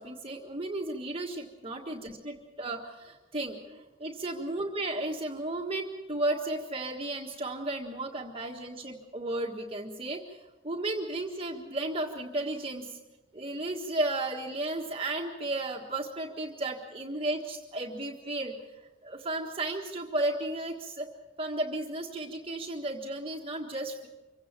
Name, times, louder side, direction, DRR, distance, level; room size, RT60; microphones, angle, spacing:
voice 1, 0.0-13.0 13.3-18.5 19.0-21.1 21.4-24.1, right 2 dB, 30° right, 1 dB, 1.6 m, -34 dB
25.0 x 16.5 x 7.4 m, 1.1 s
head